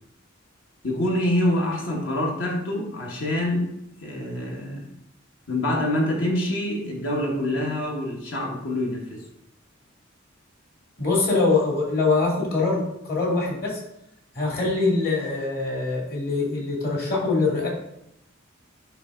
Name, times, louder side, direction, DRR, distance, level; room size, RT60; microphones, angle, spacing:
voice 1, 0.8-3.7 4.0-4.9 5.5-9.2, left 1 dB, 65° left, -1 dB, 1.7 m, -26 dB
voice 2, 11.0-13.8 14.3-17.7, left 3 dB, 50° left, -3 dB, 2.5 m, -23 dB
10.0 x 3.5 x 3.9 m, 0.80 s
head